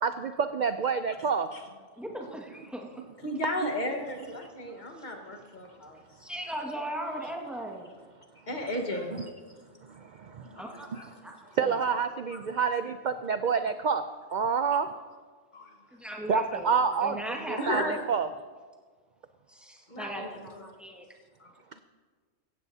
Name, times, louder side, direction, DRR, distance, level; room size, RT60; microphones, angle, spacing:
voice 1, 0.0-1.5 3.6-3.7 9.9-10.5 10.9-11.0 11.5-14.0 14.3-14.9 16.3-17.2 17.5-17.8 18.1-18.3, right 6 dB, 65° right, 9 dB, 0.4 m, -28 dB
voice 2, 2.0-3.0 5.0-5.1 6.2-7.9 10.6-11.8 14.8-14.9 15.9-18.0 19.5-21.1, right 1 dB, ahead, -1 dB, 1.7 m, -38 dB
voice 3, 3.2-6.0 8.5-9.3 10.4-11.0 12.3-12.4 14.6-14.8 15.5-15.7 17.6-18.0 19.9-20.7 21.4-21.8, left 1 dB, 35° left, 2 dB, 1.6 m, -35 dB
16.5 x 15.0 x 2.8 m, 1.5 s
omnidirectional pair, 1.3 m